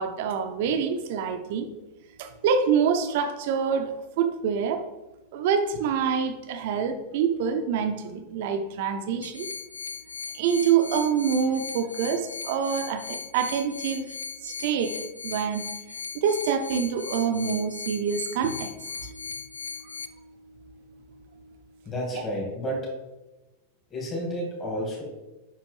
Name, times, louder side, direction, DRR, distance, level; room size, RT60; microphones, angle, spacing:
voice 1, 0.0-1.7 2.2-4.8 5.3-9.5 10.3-14.1 14.4-15.0 15.2-15.6 16.1-18.7 19.0-19.3, right 7 dB, 50° right, 7 dB, 0.7 m, -26 dB
sound 1, 9.2-20.1, left 5 dB, 75° left, 0.3 m, -38 dB
voice 2, 21.9-22.9 23.9-25.0, equal, 25° left, -2 dB, 2.1 m, -31 dB
8.3 x 5.8 x 3.3 m, 1.1 s
figure-of-eight pair, 90°, 0 cm